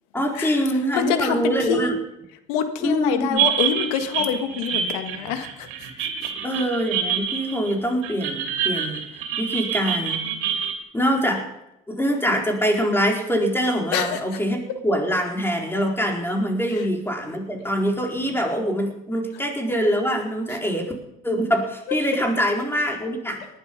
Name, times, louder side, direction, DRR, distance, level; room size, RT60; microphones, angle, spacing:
voice 1, 0.1-1.9 2.8-3.4 6.4-9.0 9.4-10.2 10.9-11.5 11.9-20.9 21.2-23.4, equal, 10° left, 1 dB, 4.4 m, -24 dB
voice 2, 0.9-2.0 2.5-5.7 13.9-14.2, left 8 dB, 85° left, 8 dB, 1.8 m, -25 dB
sound 1, 3.4-10.8, right 8 dB, 80° right, 3.1 m, -27 dB
19.0 x 11.5 x 5.4 m, 0.88 s
supercardioid pair, 90°, 20 cm